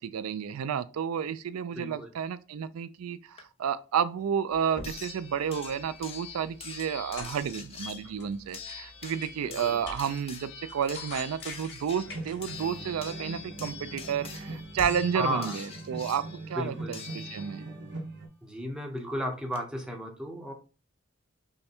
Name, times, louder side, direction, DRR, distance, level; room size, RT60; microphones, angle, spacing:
voice 1, 0.0-17.7, right 8 dB, 90° right, 0.4 m, -31 dB
voice 2, 1.7-2.1 9.4-9.8 15.1-15.6 16.6-17.0 18.4-20.5, equal, 5° right, 0.8 m, -34 dB
sound 1, 3.4-3.5 4.8-17.8 19.1-19.2 19.5-19.6, left 6 dB, 30° left, 0.7 m, -44 dB
sound 2, 4.5-14.9, left 2 dB, 50° left, 2.7 m, -47 dB
sound 3, 12.0-18.3, right 2 dB, 55° right, 0.9 m, -41 dB
5.4 x 2.2 x 4.4 m
head